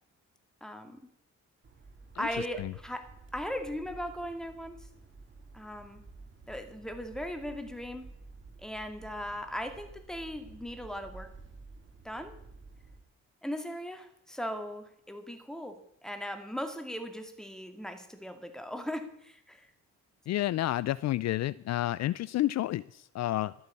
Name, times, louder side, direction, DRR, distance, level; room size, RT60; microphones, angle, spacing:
voice 1, 0.6-1.0 2.2-4.9 5.5-6.0 6.5-8.1 8.6-11.3 12.0-12.4 13.4-19.7, equal, ahead, 6 dB, 2.2 m, -38 dB
sound 1, 1.6-13.0, right 3 dB, 40° right, 2.9 m, -51 dB
voice 2, 20.3-23.5, left 14 dB, 60° left, 19 dB, 0.4 m, -30 dB
12.0 x 9.4 x 8.5 m, 0.73 s
cardioid pair, 90°, 30 cm